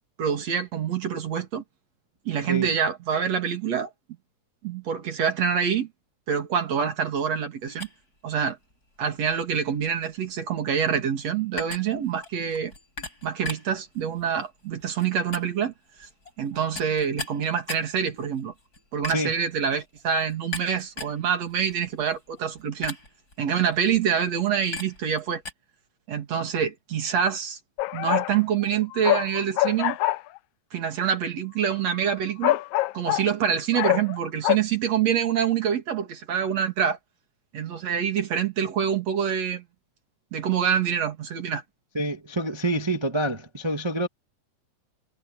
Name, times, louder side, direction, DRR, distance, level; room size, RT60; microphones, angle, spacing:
voice 1, 0.2-1.6 2.2-3.9 4.6-5.9 6.3-7.9 8.2-8.6 9.0-12.7 13.2-15.7 16.0-16.1 16.4-18.5 18.9-23.0 23.4-25.4 26.1-27.6 27.9-30.0 30.7-32.6 32.9-37.0 37.5-39.6 40.3-41.6, right 8 dB, 60° right, 3.4 m, -26 dB
sound 1, 7.7-25.5, left 3 dB, 30° left, 7.2 m, -41 dB
sound 2, 27.8-28.4 28.7-30.4 31.9-32.0 32.4-33.3 33.7-34.2 34.4-34.6, left 16 dB, 85° left, 1.3 m, -24 dB
voice 2, 41.9-44.1, right 1 dB, 20° right, 0.7 m, -27 dB
omnidirectional pair, 3.4 m